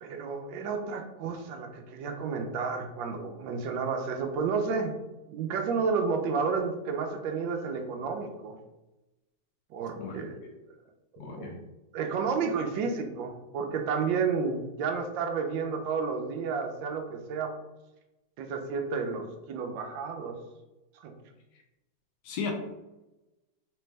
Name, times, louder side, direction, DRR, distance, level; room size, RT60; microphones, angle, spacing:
voice 1, 0.0-5.0 5.3-8.6 9.7-10.4 11.2-11.5 11.9-17.5 18.4-20.4 21.0-21.1, right 5 dB, 85° right, 5 dB, 1.3 m, -31 dB
voice 2, 10.0-10.5 11.2-11.6 22.2-22.5, left 5 dB, 70° left, 2 dB, 1.2 m, -36 dB
3.3 x 3.3 x 3.2 m, 1.0 s
omnidirectional pair, 2.0 m